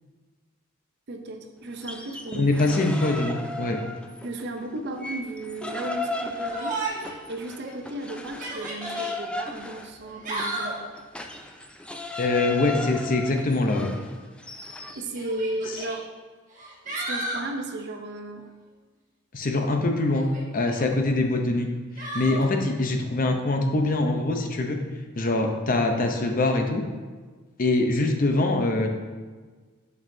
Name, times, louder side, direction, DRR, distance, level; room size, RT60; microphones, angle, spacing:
voice 1, 1.1-2.7 4.2-6.9 7.3-10.8 15.0-16.1 16.8-18.5 20.8-21.2 22.3-22.6, right 2 dB, 55° right, 5 dB, 0.6 m, -35 dB
sound 1, 1.7-4.4 4.8-15.0, left 2 dB, 5° left, 0.3 m, -35 dB
voice 2, 2.3-3.8 12.2-13.9 19.3-20.2 20.5-21.7 22.0-24.8 25.2-26.8 27.6-28.9, left 2 dB, 40° left, 4 dB, 0.6 m, -23 dB
Yell, 6.5-7.2 7.6-7.7 8.3-9.2 10.0-10.8 12.6-13.0 14.2-14.3 15.1-16.0 16.5-17.5 20.1-20.8 22.0-22.4, right 2 dB, 40° right, 1.1 m, -33 dB
7.8 x 5.4 x 2.7 m, 1.4 s
head